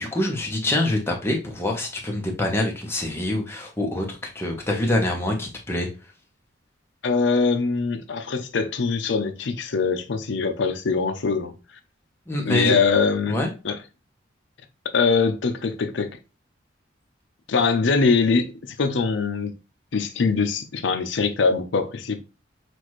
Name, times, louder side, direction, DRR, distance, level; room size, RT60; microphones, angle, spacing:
voice 1, 0.0-5.9 12.3-12.7 13.3-13.5, left 1 dB, 10° left, 0.9 m, -25 dB
voice 2, 7.0-11.5 12.4-13.4 13.6-13.8 14.9-16.2 17.5-19.5 19.9-22.2, left 4 dB, 65° left, 0.5 m, -22 dB
6.0 x 2.5 x 3.1 m
head